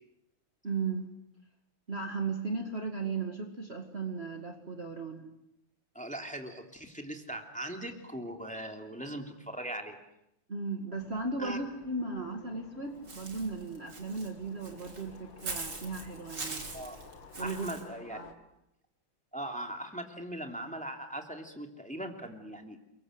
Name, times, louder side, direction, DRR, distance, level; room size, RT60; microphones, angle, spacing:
voice 1, 0.6-1.0 1.9-5.3 10.5-16.7 17.4-17.7 18.1-18.3, right 4 dB, 30° right, 3 dB, 2.3 m, -36 dB
voice 2, 5.9-10.0 11.4-11.6 16.7-17.0 17.4-18.2 19.3-22.8, right 1 dB, 5° left, 3 dB, 2.9 m, -40 dB
sound 1, 10.9-18.3, left 5 dB, 75° left, 2.6 m, -54 dB
Walk footsteps / Bird, 13.1-17.8, right 3 dB, 60° right, 3.9 m, -42 dB
29.5 x 22.5 x 8.1 m, 0.83 s
omnidirectional pair, 2.2 m